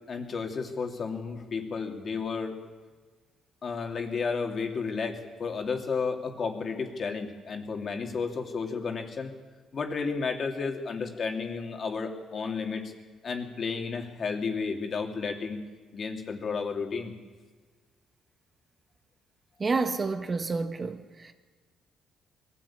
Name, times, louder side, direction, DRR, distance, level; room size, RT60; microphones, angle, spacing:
voice 1, 0.0-2.6 3.6-9.3 9.7-12.9 13.2-15.6 15.9-17.1, left 5 dB, 45° left, 2.9 m, -32 dB
voice 2, 19.6-21.3, right 4 dB, 35° right, 1.4 m, -29 dB
21.0 x 15.0 x 8.8 m
cardioid pair, 75°, 0 cm